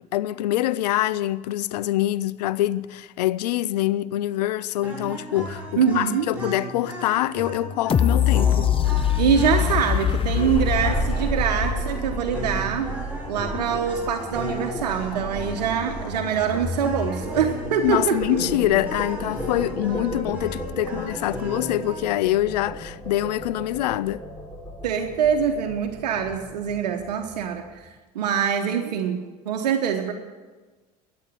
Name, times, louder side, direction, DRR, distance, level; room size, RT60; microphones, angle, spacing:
voice 1, 0.1-8.7 13.5-13.7 17.8-24.2, left 14 dB, 80° left, 0.5 m, -25 dB
sound 1, 4.8-22.0, right 1 dB, 5° right, 5.3 m, -36 dB
voice 2, 5.8-6.3 9.2-12.9 13.3-18.4 20.9-21.0 24.8-27.9 28.1-30.1, right 7 dB, 85° right, 1.1 m, -24 dB
sound 2, 7.9-12.8 13.2-13.3, left 10 dB, 25° left, 0.5 m, -23 dB
sound 3, 10.4-27.7, right 1 dB, 10° left, 3.0 m, -34 dB
12.5 x 8.0 x 9.3 m
hypercardioid pair, 80°, 20 cm